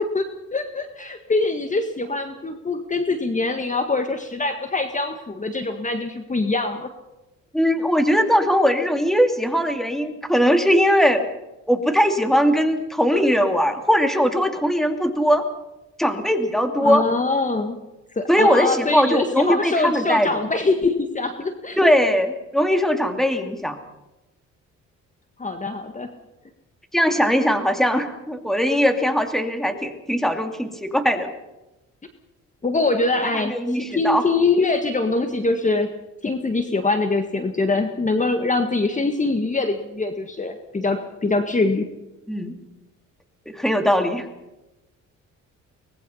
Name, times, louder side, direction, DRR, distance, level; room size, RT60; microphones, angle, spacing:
voice 1, 0.1-6.9 16.8-17.8 18.2-21.8 25.4-26.1 32.6-35.9 36.2-41.9, left 3 dB, 25° left, 7 dB, 1.7 m, -23 dB
voice 2, 7.5-11.2 11.7-15.5 16.0-17.1 18.3-20.3 21.8-23.8 26.9-31.3 33.2-34.3 42.3-42.6 43.5-44.3, equal, ahead, 6 dB, 2.7 m, -20 dB
24.5 x 19.5 x 5.7 m, 1.0 s
cardioid pair, 90°, 30 cm